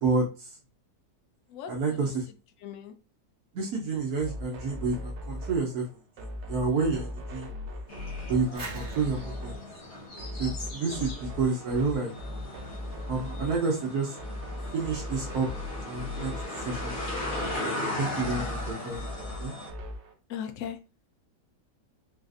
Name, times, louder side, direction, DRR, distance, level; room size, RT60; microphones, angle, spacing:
voice 1, 0.0-0.5 1.7-2.2 3.5-5.9 6.2-7.5 8.3-9.5 10.4-12.1 13.1-14.2 14.7-15.5 15.8-17.0 18.0-19.5, right 4 dB, 65° right, -1 dB, 1.1 m, -29 dB
voice 2, 1.5-2.1 2.6-2.9 10.8-11.1 18.1-18.5 20.3-20.8, left 8 dB, 80° left, 7 dB, 0.7 m, -40 dB
sound 1, 4.2-20.1, left 1 dB, 85° right, 0.6 m, -39 dB
sound 2, 7.9-19.7, left 1 dB, 45° left, 1.2 m, -38 dB
sound 3, 8.5-11.3, right 2 dB, 35° right, 1.0 m, -45 dB
4.0 x 2.5 x 2.4 m, 0.33 s
omnidirectional pair, 1.9 m